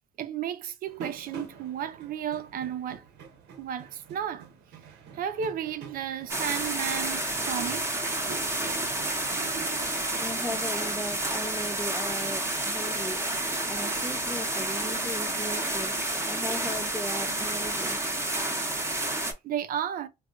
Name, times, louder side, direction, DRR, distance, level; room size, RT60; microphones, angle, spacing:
voice 1, 0.2-3.1 3.6-4.5 5.1-8.0 8.6-8.8 9.1-10.0 10.3-10.4 13.7-14.1 19.0-19.1 19.4-20.1, right 9 dB, 60° right, 0.6 m, -34 dB
sound 1, 0.9-11.7, right 5 dB, 85° right, 0.8 m, -48 dB
sound 2, 6.3-19.3, right 2 dB, 15° right, 0.8 m, -30 dB
voice 2, 10.2-13.2 13.7-18.0, left 1 dB, 5° left, 0.3 m, -37 dB
3.6 x 2.4 x 2.4 m
cardioid pair, 110°, 17 cm